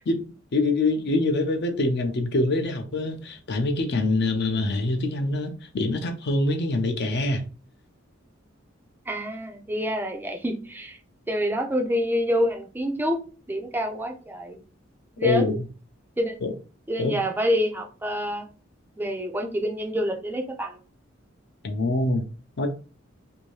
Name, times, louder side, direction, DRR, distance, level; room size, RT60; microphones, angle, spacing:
voice 1, 0.5-7.4 15.2-15.6 16.4-16.5 17.0-17.2 21.6-22.2 22.6-22.7, left 2 dB, 55° left, 0.6 m, -24 dB
voice 2, 9.1-11.0 11.3-13.2 13.5-14.6 15.2-15.4 16.2-16.4 16.9-18.5 19.0-20.8, equal, 10° right, 0.4 m, -27 dB
2.7 x 2.6 x 3.1 m
head